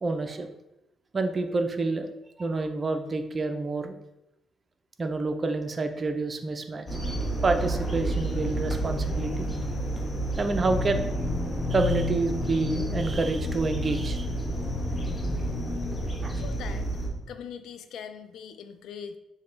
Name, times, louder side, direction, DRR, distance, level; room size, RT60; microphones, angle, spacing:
voice 1, 0.0-0.5 1.1-2.1 2.4-4.0 5.0-6.9 7.4-9.5 10.4-11.1 11.7-14.3 16.2-16.4, right 3 dB, 35° right, 7 dB, 0.5 m, -28 dB
sound 1, 6.9-17.1, right 2 dB, 20° left, 0.9 m, -31 dB
sound 2, 10.6-17.3, left 5 dB, 45° left, 0.7 m, -34 dB
voice 2, 16.4-16.9 17.3-19.2, left 7 dB, 80° left, 10 dB, 0.3 m, -41 dB
6.2 x 2.2 x 3.3 m, 0.91 s
cardioid pair, 90°, 0 cm